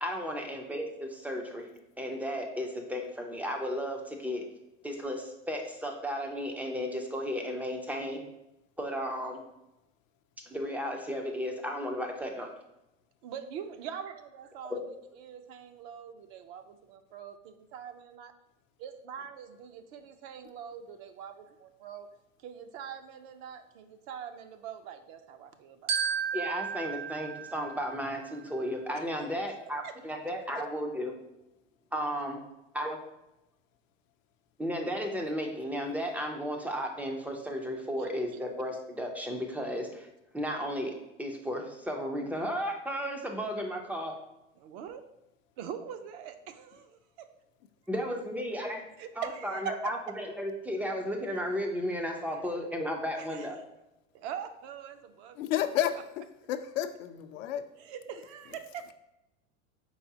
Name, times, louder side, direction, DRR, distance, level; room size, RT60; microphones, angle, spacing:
voice 1, 0.0-1.7 2.0-4.5 4.8-8.2 8.8-9.4 10.5-12.5 14.7-14.9 26.3-31.2 31.9-32.4 32.7-33.0 34.6-40.1 40.3-44.1 47.9-48.8 49.2-53.6, equal, 5° right, 2 dB, 0.3 m, -34 dB
voice 2, 13.2-14.8 15.1-18.3 18.8-21.3 21.8-22.1 22.4-26.2 28.9-29.1 29.8-29.9 38.0-38.4 44.6-45.0 45.6-46.9 49.0-49.7 52.3-52.4 53.2-53.6 54.1-55.4 57.7-58.5, right 8 dB, 55° right, 8 dB, 0.6 m, -43 dB
Glockenspiel, 25.9-28.4, right 7 dB, 80° right, 1.1 m, -34 dB
voice 3, 55.4-57.7, left 11 dB, 75° left, 9 dB, 0.5 m, -31 dB
4.7 x 3.8 x 2.7 m, 0.94 s
hypercardioid pair, 115°, 39 cm